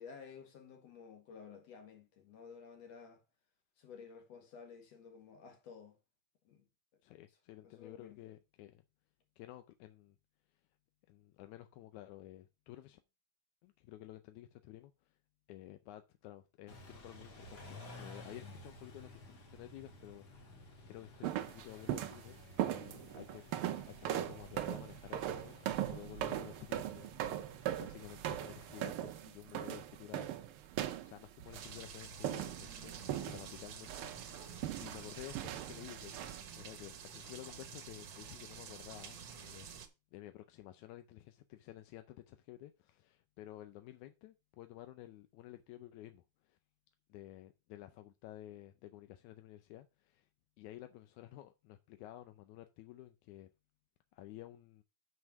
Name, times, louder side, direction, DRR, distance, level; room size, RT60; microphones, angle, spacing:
voice 1, 0.0-3.2 3.8-6.0 6.4-6.7 7.6-8.2, left 6 dB, 60° left, 2.7 m, -53 dB
voice 2, 7.0-8.8 9.4-10.2 11.1-13.0 13.6-15.1 15.5-20.4 20.9-23.5 23.9-27.5 27.8-30.7 31.0-39.7 40.1-46.6 47.1-50.3 50.6-53.5 54.1-54.8, left 14 dB, 85° left, 2.1 m, -53 dB
Car / Idling / Accelerating revving vroom, 16.7-29.0, left 2 dB, 40° left, 1.8 m, -55 dB
sound 1, 21.2-22.2 22.6-31.8 32.2-33.6 33.9-36.4, right 12 dB, 90° right, 1.1 m, -40 dB
sound 2, 31.5-39.9, right 7 dB, 60° right, 1.3 m, -49 dB
6.3 x 5.5 x 5.9 m
omnidirectional pair, 3.3 m